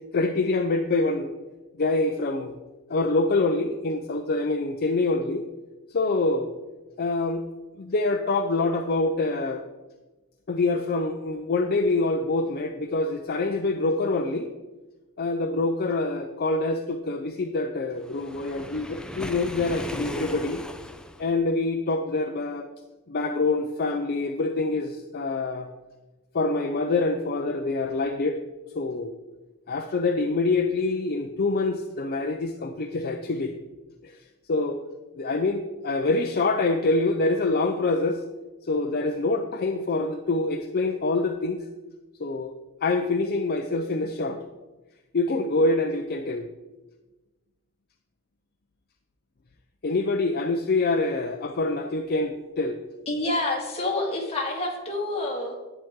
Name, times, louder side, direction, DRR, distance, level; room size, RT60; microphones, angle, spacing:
voice 1, 0.1-1.3 1.8-2.6 2.9-5.4 5.9-6.5 7.0-7.4 7.8-9.6 10.5-14.5 15.2-20.6 21.2-22.7 23.1-25.7 26.3-28.4 28.7-29.2 29.7-33.5 34.0-34.2 34.5-34.8 35.2-38.2 38.6-41.6 42.2-42.5 42.8-44.4 45.1-46.5 49.8-52.8, left 3 dB, 45° left, 5 dB, 0.6 m, -25 dB
Waves surf, 18.0-21.3, left 1 dB, 5° left, 0.5 m, -37 dB
voice 2, 53.1-55.5, left 2 dB, 30° left, -1 dB, 2.0 m, -28 dB
10.5 x 9.1 x 3.7 m, 1.2 s
head